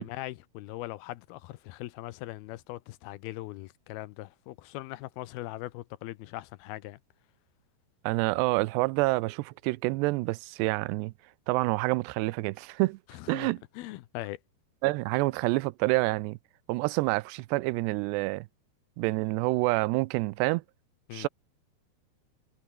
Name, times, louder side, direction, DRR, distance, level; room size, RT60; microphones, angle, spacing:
voice 1, 0.0-7.0 13.1-14.4 21.1-21.3, left 17 dB, 80° left, 2.5 m, -40 dB
voice 2, 8.0-11.1 11.5-13.0 13.3-13.6 14.8-16.4 16.7-18.5 19.0-20.6 21.1-21.3, right 22 dB, 90° right, 2.8 m, -27 dB
omnidirectional pair, 4.8 m